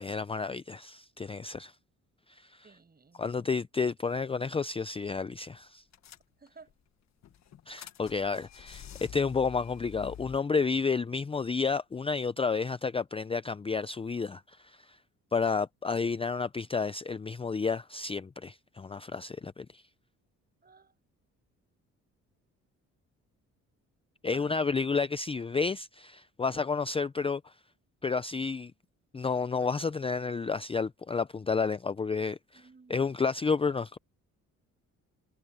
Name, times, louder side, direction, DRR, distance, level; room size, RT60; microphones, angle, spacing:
voice 1, 0.0-1.7 2.3-2.7 3.2-5.8 7.7-15.0 15.3-19.8 24.2-27.5 28.0-28.7 29.1-34.0, left 5 dB, 20° left, 0.5 m, -31 dB
voice 2, 2.6-3.5 6.4-6.7 20.6-20.9 24.3-24.5 32.5-33.0, right 4 dB, 30° right, 6.2 m, -55 dB
sound 1, 5.0-5.2 5.5-5.6 5.9-6.7 7.2-10.4, left 10 dB, 65° left, 1.6 m, -48 dB
cardioid pair, 90°, 30 cm